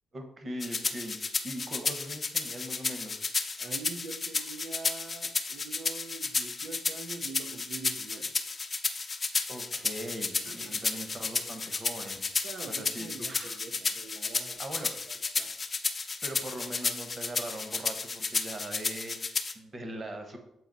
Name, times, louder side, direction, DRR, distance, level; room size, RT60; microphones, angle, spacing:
voice 1, 0.1-3.2 9.5-12.4 12.7-13.6 14.6-15.0 16.2-20.4, right 1 dB, 35° right, 5 dB, 1.2 m, -41 dB
sound 1, 0.6-19.5, left 4 dB, 35° left, 0.6 m, -32 dB
voice 2, 3.6-8.3 10.4-10.8 12.4-14.8 15.1-15.5, right 4 dB, 75° right, 3 dB, 0.7 m, -44 dB
7.9 x 4.1 x 4.0 m, 0.82 s
cardioid pair, 100°, 0 cm